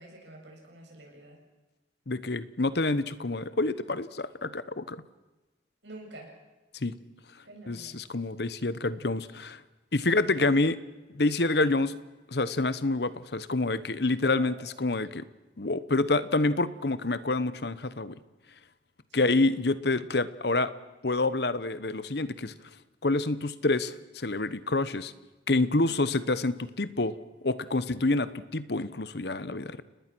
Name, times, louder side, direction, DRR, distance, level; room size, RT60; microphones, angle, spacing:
voice 1, 0.0-1.4 5.8-6.3 7.4-8.0 10.0-10.1 14.2-14.5 19.1-19.4 25.8-25.9, right 1 dB, 75° right, 0 dB, 8.0 m, -47 dB
voice 2, 2.1-5.0 6.8-6.9 7.7-9.6 9.9-10.8 11.1-11.9 12.3-15.2 15.6-18.2 19.1-20.7 21.0-22.5 23.0-25.1 25.5-27.2 27.4-29.8, left 2 dB, 60° left, 15 dB, 1.0 m, -27 dB
30.0 x 20.0 x 6.2 m, 1.1 s
head